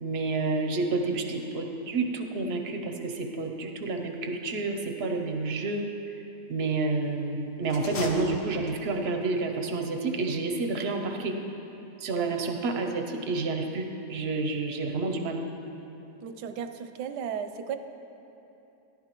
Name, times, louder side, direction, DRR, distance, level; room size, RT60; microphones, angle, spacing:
voice 1, 0.0-5.8 6.5-11.4 12.0-15.4, right 3 dB, 60° right, 4 dB, 0.6 m, -29 dB
sound 1, 7.6-9.0, left 3 dB, 65° left, 1.3 m, -38 dB
voice 2, 16.2-17.8, right 7 dB, 85° right, 9 dB, 1.2 m, -35 dB
13.0 x 11.0 x 3.0 m, 2.9 s
omnidirectional pair, 1.8 m